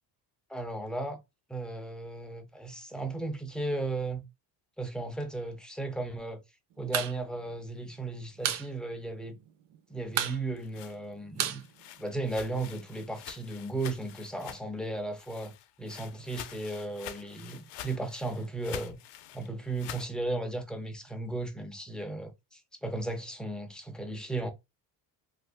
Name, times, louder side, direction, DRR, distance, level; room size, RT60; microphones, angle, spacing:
voice 1, 0.5-1.2 1.5-4.2 4.8-6.4 6.8-9.4 9.9-11.6 12.0-19.0 19.3-24.5, right 2 dB, ahead, 0.3 m, -35 dB
sound 1, 6.8-7.2 7.4-7.5 7.8-8.7 9.0-9.1 9.4-9.8 10.1-12.5, right 9 dB, 50° right, 0.5 m, -32 dB
sound 2, 10.3-14.9 15.2-20.1, left 12 dB, 85° left, 0.6 m, -46 dB
2.5 x 2.4 x 3.5 m
cardioid pair, 130°, 42 cm